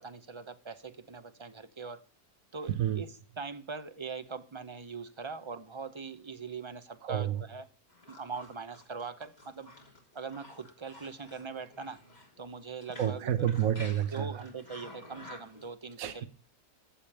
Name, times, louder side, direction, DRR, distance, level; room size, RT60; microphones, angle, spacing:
voice 1, 0.0-2.0 2.5-7.7 8.1-9.7 10.1-12.0 12.4-13.5 14.1-16.2, right 4 dB, 30° right, 0.6 m, -42 dB
voice 2, 2.7-3.0 7.0-7.4 13.0-14.3 16.0-16.2, right 10 dB, 60° right, 1.3 m, -29 dB
sound 1, 7.9-15.7, left 1 dB, 25° left, 3.4 m, -51 dB
14.5 x 5.1 x 8.8 m
omnidirectional pair, 1.7 m